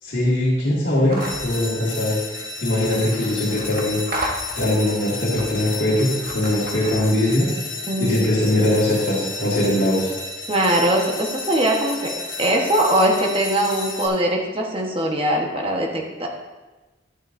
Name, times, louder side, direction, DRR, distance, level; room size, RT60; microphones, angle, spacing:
voice 1, 0.0-4.0 4.6-7.5 8.0-10.1, left 1 dB, 65° left, -8 dB, 2.1 m, -21 dB
sound 1, 1.1-1.5 2.7-4.9 5.3-7.3, right 1 dB, 55° right, 1.2 m, -33 dB
sound 2, 1.2-14.1, left 3 dB, 45° left, 1.6 m, -32 dB
voice 2, 7.9-8.2 10.5-12.1 12.4-16.3, right 1 dB, 30° right, 0 dB, 1.2 m, -21 dB
11.5 x 9.8 x 2.6 m, 1.2 s
head